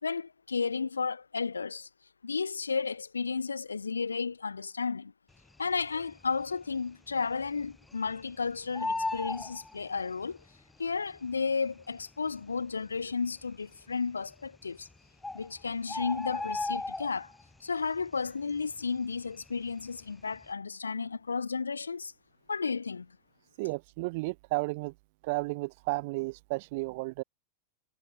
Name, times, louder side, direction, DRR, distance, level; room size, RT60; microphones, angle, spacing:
voice 1, 0.0-1.9 2.2-5.1 5.6-10.4 10.8-14.9 15.3-17.3 17.6-22.1 22.5-23.1, left 5 dB, 75° left, 1.3 m, -33 dB
Bird, 5.8-6.4 6.8-6.9 7.1-8.3 8.6-10.4 11.3-11.4 12.0-12.1 12.3-12.4 13.0-13.5 14.5-14.6 14.9-15.0 15.2-17.5 17.9-18.2 18.5-19.9 20.2-20.5, left 2 dB, 5° left, 0.3 m, -36 dB
voice 2, 23.6-24.9 25.2-27.2, right 25 dB, 50° right, 0.8 m, -33 dB
figure-of-eight pair, 90°, 0 cm